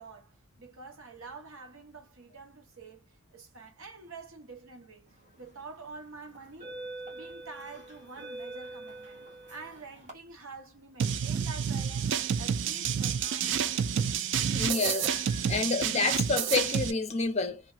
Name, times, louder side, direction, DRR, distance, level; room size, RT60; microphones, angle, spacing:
voice 1, 0.0-6.8 7.1-9.2 9.5-13.5, right 4 dB, 75° right, 1.0 m, -47 dB
sound 1, 5.3-5.6 6.3-10.1, right 2 dB, 35° right, 1.3 m, -44 dB
sound 2, 11.0-16.9, right 7 dB, 55° right, 0.3 m, -29 dB
voice 2, 14.5-17.6, left 3 dB, 30° left, 0.5 m, -29 dB
2.8 x 2.4 x 2.7 m
head